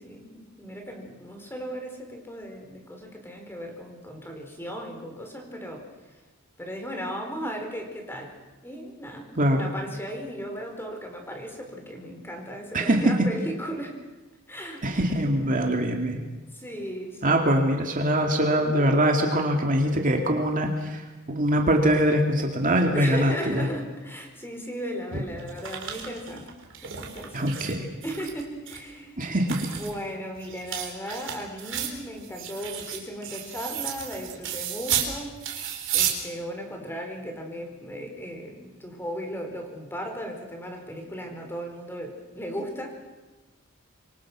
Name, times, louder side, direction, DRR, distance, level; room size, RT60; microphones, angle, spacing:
voice 1, 0.0-5.9 6.6-8.3 8.6-14.0 14.5-14.8 16.5-17.4 22.9-26.5 26.8-27.5 28.0-29.2 29.7-35.4 35.9-43.0, equal, 10° left, 3 dB, 4.6 m, -36 dB
voice 2, 9.4-9.7 12.7-13.1 14.8-16.2 17.2-21.0 21.3-23.6 27.3-27.9 29.2-29.6, right 1 dB, 40° right, 3 dB, 2.4 m, -23 dB
sound 1, 25.1-27.8 28.0-28.8 29.2-35.1 35.4-36.1, right 9 dB, 60° right, 4.1 m, -32 dB
27.0 x 24.0 x 6.2 m, 1.2 s
head